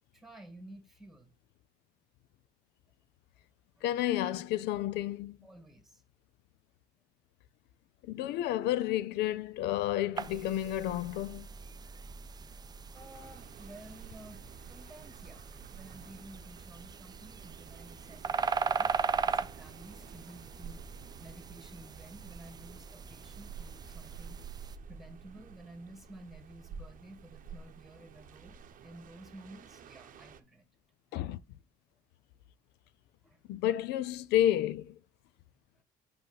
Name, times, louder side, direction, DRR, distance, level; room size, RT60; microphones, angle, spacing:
voice 1, 0.1-1.3 3.8-3.9 5.4-6.0 12.9-15.4 15.7-20.9 21.2-24.4 24.9-30.7 31.1-31.3 33.2-33.4 35.7-35.8, right 1 dB, ahead, 1.7 m, -52 dB
voice 2, 3.8-5.4 8.0-11.5 31.1-31.4 33.5-34.9, left 12 dB, 85° left, 0.5 m, -31 dB
sound 1, 10.2-24.8, right 5 dB, 25° right, 0.4 m, -39 dB
sound 2, 12.9-30.4, right 7 dB, 50° right, 0.8 m, -51 dB
5.7 x 5.3 x 3.9 m
cardioid pair, 110°, 17 cm